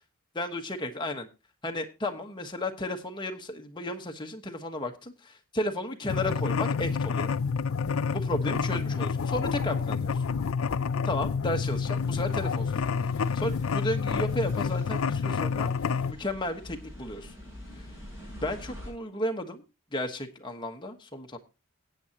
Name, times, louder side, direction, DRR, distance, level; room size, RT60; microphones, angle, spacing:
voice 1, 0.3-1.3 1.6-7.3 8.1-10.2 11.0-12.8 13.2-15.7 16.1-17.3 18.4-19.6 19.9-21.4, left 1 dB, 20° left, 4 dB, 1.3 m, -33 dB
sound 1, 6.1-16.1, left 5 dB, 80° left, 0.5 m, -28 dB
sound 2, 11.6-18.9, left 1 dB, 15° right, 6.6 m, -47 dB
16.0 x 8.8 x 2.9 m, 0.29 s
head